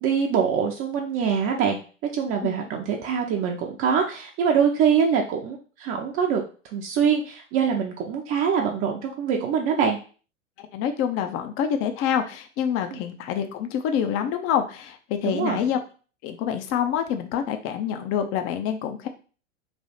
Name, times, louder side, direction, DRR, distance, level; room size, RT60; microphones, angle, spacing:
voice 1, 0.0-1.8 2.1-6.4 6.7-10.0 12.9-13.0 15.2-15.6, right 7 dB, 35° right, 1 dB, 0.7 m, -24 dB
voice 2, 10.6-15.8 16.2-19.1, left 8 dB, 35° left, 7 dB, 0.7 m, -26 dB
3.4 x 2.7 x 4.1 m, 0.37 s
hypercardioid pair, 105°, 38 cm